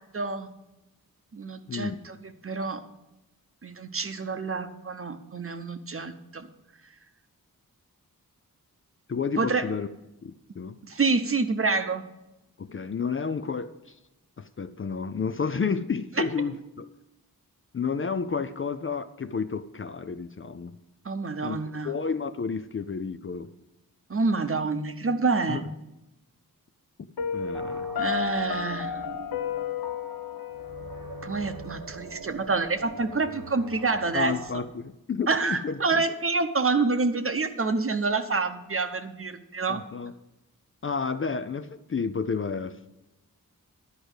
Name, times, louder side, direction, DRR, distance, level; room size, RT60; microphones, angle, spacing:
voice 1, 0.1-0.5 1.3-2.2 2.4-2.8 3.6-6.5 9.4-9.6 10.9-12.0 16.2-16.3 21.0-21.9 24.1-25.6 28.0-29.0 31.2-34.6 35.3-39.8, right 4 dB, 40° right, 8 dB, 0.8 m, -27 dB
voice 2, 9.1-9.9 10.2-10.8 12.6-14.0 14.4-16.9 17.7-20.7 21.4-23.5 25.5-25.6 27.3-27.9 34.1-36.0 39.7-40.1 40.8-42.9, left 5 dB, 35° left, 11 dB, 0.4 m, -31 dB
Piano, 27.2-32.1, left 8 dB, 85° left, 0.8 m, -33 dB
sound 1, 27.5-34.5, right 3 dB, 70° right, 1.0 m, -43 dB
11.0 x 5.0 x 8.0 m, 0.96 s
wide cardioid pair, 90°, 35 cm